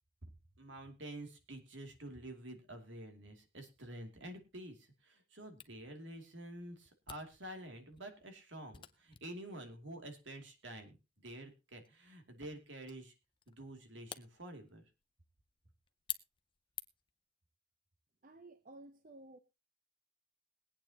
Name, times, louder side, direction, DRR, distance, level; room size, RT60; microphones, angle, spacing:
voice 1, 0.6-13.1 13.5-14.8, right 1 dB, 80° right, 5 dB, 2.5 m, -49 dB
Camera, 5.6-17.2, left 10 dB, 25° left, 0.5 m, -52 dB
voice 2, 18.2-19.4, right 2 dB, 45° right, 9 dB, 0.8 m, -54 dB
22.0 x 8.8 x 2.8 m, 0.27 s
head